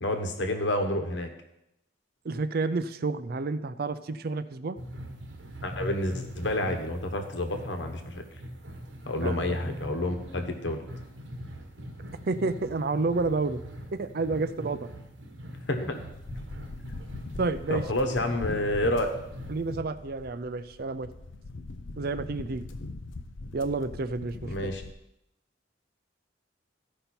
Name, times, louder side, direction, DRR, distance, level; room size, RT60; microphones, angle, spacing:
voice 1, 0.0-1.3 5.6-8.2 9.1-10.8 15.7-16.0 17.7-19.1 24.4-24.8, left 1 dB, 70° left, 5 dB, 1.2 m, -29 dB
voice 2, 2.2-4.8 9.2-9.4 12.3-13.6 13.9-14.9 17.4-17.8 19.5-21.1 22.0-22.7 23.5-24.5, right 3 dB, 55° right, 13 dB, 0.5 m, -30 dB
sound 1, 4.8-19.8, equal, 80° right, 1.4 m, -42 dB
sound 2, 16.1-24.9, left 2 dB, 85° left, 0.6 m, -41 dB
14.5 x 5.4 x 4.4 m, 0.83 s
head